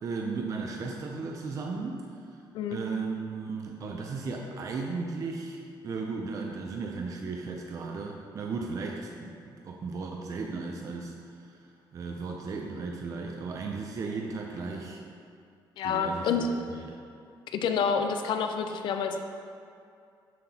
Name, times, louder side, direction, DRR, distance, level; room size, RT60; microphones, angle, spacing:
voice 1, 0.0-2.1 2.7-11.6 11.9-15.0 15.8-16.9, right 4 dB, 40° right, 1 dB, 0.5 m, -35 dB
voice 2, 15.8-16.5 17.5-19.2, left 6 dB, 70° left, 6 dB, 0.4 m, -28 dB
7.4 x 5.8 x 2.8 m, 2.4 s
cardioid pair, 135°, 8 cm